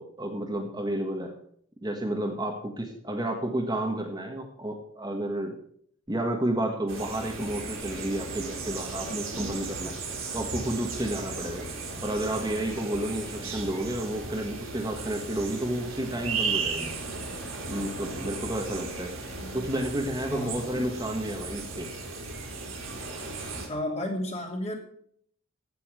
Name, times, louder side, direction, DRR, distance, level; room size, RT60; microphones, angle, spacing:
voice 1, 0.0-1.4 1.8-5.6 6.1-10.0 10.3-11.7 12.0-16.9 17.7-19.1 19.5-21.9, right 1 dB, 20° right, 2 dB, 1.5 m, -31 dB
sound 1, 6.9-23.7, right 4 dB, 75° right, 3.6 m, -36 dB
voice 2, 20.3-20.8 23.7-24.8, left 1 dB, 30° left, 1 dB, 2.9 m, -32 dB
15.5 x 5.7 x 8.0 m, 0.65 s
head